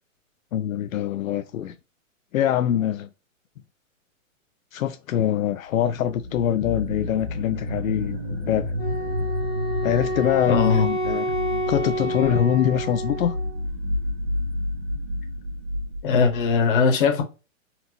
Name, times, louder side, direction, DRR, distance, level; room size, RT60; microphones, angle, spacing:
voice 1, 0.5-1.7 2.3-3.1 4.7-8.7 9.8-11.3 11.7-13.4, left 10 dB, 75° left, 0.5 m, -24 dB
sound 1, 6.0-16.6, left 1 dB, 40° right, 1.5 m, -30 dB
Wind instrument woodwind instrument, 8.8-13.6, equal, 15° left, 0.5 m, -29 dB
voice 2, 10.5-10.8 16.0-17.2, left 5 dB, 40° left, 1.2 m, -20 dB
4.3 x 2.6 x 2.9 m
hypercardioid pair, 175°, 41 cm